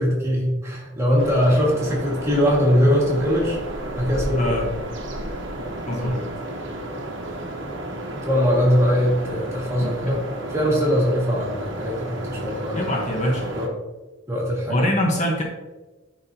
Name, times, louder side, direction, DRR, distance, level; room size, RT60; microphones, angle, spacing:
voice 1, 0.0-3.6 3.9-4.6 5.9-6.1 8.1-10.2 10.5-12.9 13.5-13.7 14.3-14.9, equal, 15° right, -4 dB, 1.8 m, -21 dB
sound 1, 1.2-13.7, right 1 dB, 60° right, 1.1 m, -32 dB
voice 2, 4.3-4.7 5.9-6.2 9.8-9.9 12.7-13.5 14.7-15.4, left 1 dB, 35° left, -1 dB, 1.0 m, -24 dB
11.0 x 4.1 x 2.7 m, 1.2 s
head